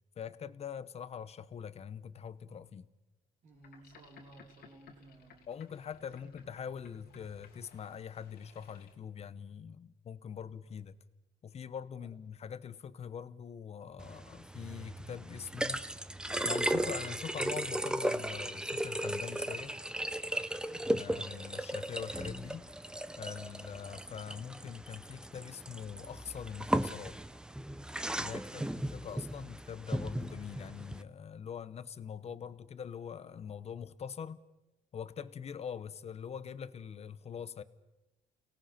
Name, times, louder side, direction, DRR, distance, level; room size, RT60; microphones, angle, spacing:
voice 1, 0.2-2.9 5.5-11.0 11.4-15.8 16.4-19.8 20.8-22.7 23.2-27.2 28.2-34.4 34.9-37.6, left 7 dB, 40° left, 1.0 m, -43 dB
voice 2, 3.4-5.5 10.3-10.6 12.0-12.1 20.6-21.0 28.4-28.8, right 2 dB, 45° right, 3.2 m, -57 dB
Boat Water vehicle, 3.5-9.0, left 5 dB, 70° left, 2.5 m, -59 dB
sound 1, 14.0-31.0, right 1 dB, 5° right, 0.7 m, -36 dB
29.0 x 18.0 x 5.9 m
cardioid pair, 110°, 17 cm